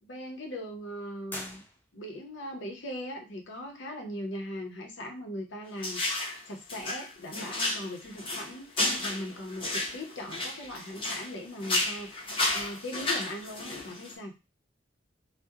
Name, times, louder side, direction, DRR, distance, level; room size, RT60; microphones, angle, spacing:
voice 1, 0.0-1.6 1.9-14.3, left 1 dB, 85° left, 2 dB, 0.7 m, -40 dB
sound 1, 1.3-2.3, left 1 dB, 10° left, 0.3 m, -43 dB
sound 2, 5.8-6.4 6.7-11.3 11.6-14.1, left 2 dB, 30° left, 0.7 m, -32 dB
2.8 x 2.1 x 2.3 m, 0.27 s
head